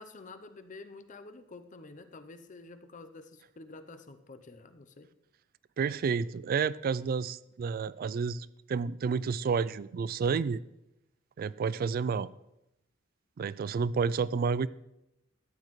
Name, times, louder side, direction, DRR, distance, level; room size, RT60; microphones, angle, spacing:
voice 1, 0.0-5.1, left 3 dB, 40° left, 10 dB, 0.7 m, -49 dB
voice 2, 5.8-10.6 11.4-12.3 13.4-14.7, right 5 dB, 50° right, 19 dB, 0.3 m, -30 dB
13.0 x 9.5 x 3.2 m, 0.87 s
head